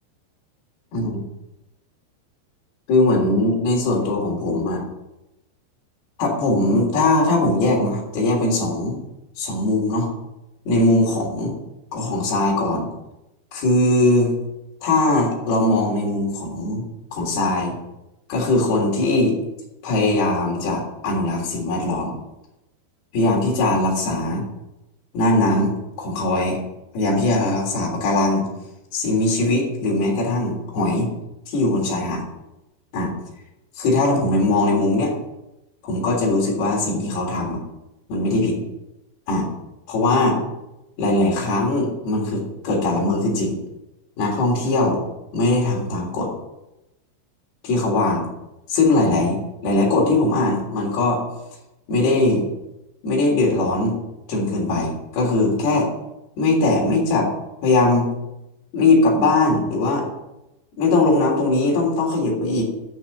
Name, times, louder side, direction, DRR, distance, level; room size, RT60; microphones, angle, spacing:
voice 1, 2.9-4.8 6.2-9.0 9.4-10.1 10.7-11.5 11.9-12.9 13.5-14.3 14.8-16.8 17.1-17.8 18.3-19.4 19.8-22.1 23.1-24.4 25.1-25.7 26.0-26.6 26.9-28.5 28.9-31.1 31.5-32.2 32.9-33.1 33.8-35.1 35.8-37.6 38.1-38.6 39.3-39.5 39.9-40.4 41.0-43.6 44.2-45.0 45.3-46.3 47.6-48.3 48.7-51.2 51.9-52.5 53.0-53.9 54.3-55.9 56.4-57.3 57.6-58.1 58.7-60.1 60.8-62.6, left 2 dB, 55° left, -2 dB, 5.2 m, -20 dB
11.5 x 6.7 x 9.6 m, 0.94 s
omnidirectional pair, 5.6 m